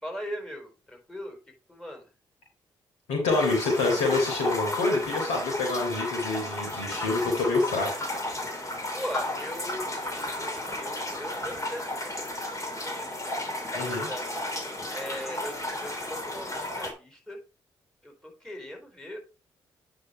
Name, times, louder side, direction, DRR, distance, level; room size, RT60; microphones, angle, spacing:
voice 1, 0.0-1.4 1.7-2.1 8.9-14.3 14.9-17.4 18.0-19.2, equal, 5° left, 3 dB, 4.4 m, -40 dB
voice 2, 3.1-7.9 13.7-14.1, left 3 dB, 80° left, 1 dB, 3.6 m, -26 dB
sound 1, 3.3-16.9, left 1 dB, 30° left, 3.3 m, -33 dB
9.5 x 5.5 x 4.7 m, 0.33 s
hypercardioid pair, 40°, 11 cm